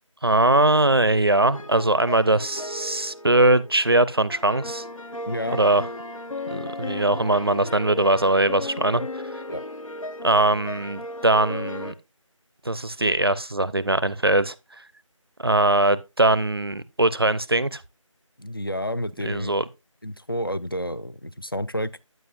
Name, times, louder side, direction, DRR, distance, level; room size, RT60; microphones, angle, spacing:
voice 1, 0.2-4.8 5.5-5.8 6.5-9.0 10.2-11.9 12.7-14.5 15.4-17.8 19.2-19.7, right 2 dB, 45° right, 0.5 m, -21 dB
sound 1, 1.4-11.9, left 2 dB, 80° left, 0.9 m, -35 dB
voice 2, 5.3-5.6 9.5-9.6 18.4-19.6 20.0-22.0, equal, 45° left, 0.4 m, -30 dB
9.2 x 8.2 x 2.4 m
figure-of-eight pair, 170°, 17 cm